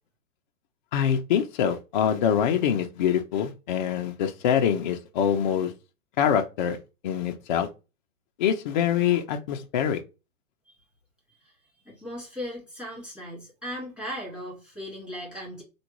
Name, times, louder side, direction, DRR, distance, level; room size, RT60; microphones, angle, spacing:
voice 1, 0.9-5.7 6.2-6.8 7.0-7.7 8.4-10.0, left 8 dB, 35° left, 0.4 m, -24 dB
voice 2, 11.9-15.6, equal, 5° right, 1.9 m, -37 dB
3.4 x 2.2 x 3.0 m
hypercardioid pair, 140°, 42 cm